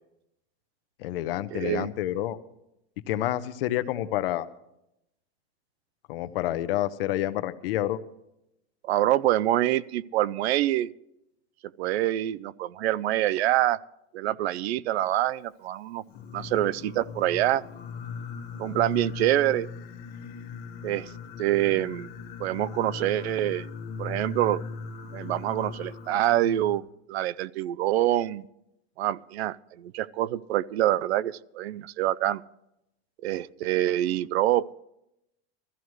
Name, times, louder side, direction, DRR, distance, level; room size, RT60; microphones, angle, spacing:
voice 1, 1.0-2.4 3.1-4.5 6.1-8.0, left 13 dB, 55° left, 13 dB, 0.8 m, -28 dB
voice 2, 1.5-1.9 8.8-10.9 11.8-13.8 14.1-16.0 16.3-17.6 18.6-19.7 20.8-21.1 21.4-22.1 22.4-23.7 24.0-24.6 25.1-26.8 27.1-28.4 29.0-32.4 33.2-34.7, right 14 dB, 70° right, 19 dB, 0.5 m, -26 dB
Singing, 16.1-26.8, left 5 dB, 30° left, 1.4 m, -39 dB
20.5 x 14.5 x 3.2 m, 0.83 s
supercardioid pair, 170°, 33 cm